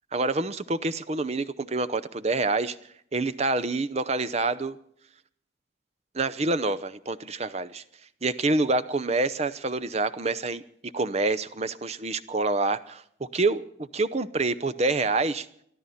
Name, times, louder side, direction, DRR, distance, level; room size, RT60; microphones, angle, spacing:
voice 1, 0.1-2.8 3.1-4.8 6.1-7.8 8.2-15.5, right 3 dB, 35° right, 13 dB, 0.6 m, -27 dB
23.5 x 13.0 x 4.2 m, 0.68 s
head